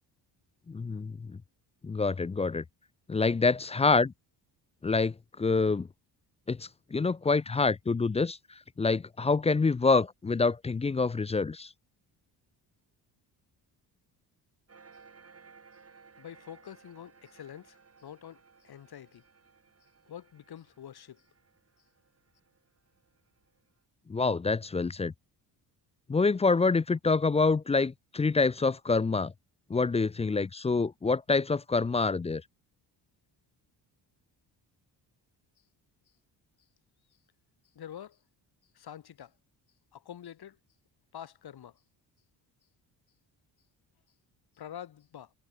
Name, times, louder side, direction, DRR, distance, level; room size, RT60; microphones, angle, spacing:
voice 1, 0.7-1.4 1.8-2.6 3.1-4.1 4.8-5.9 6.5-8.4 8.8-11.7 24.1-25.1 26.1-29.3 29.7-32.4, left 4 dB, 15° left, 0.4 m, -26 dB
sound 1, 14.7-23.7, right 5 dB, 35° right, 6.4 m, -59 dB
voice 2, 16.2-19.2 20.1-21.3 37.7-38.2 38.7-39.3 39.9-40.6 41.1-41.8 44.6-45.3, left 10 dB, 60° left, 4.1 m, -46 dB
cardioid pair, 90°, 43 cm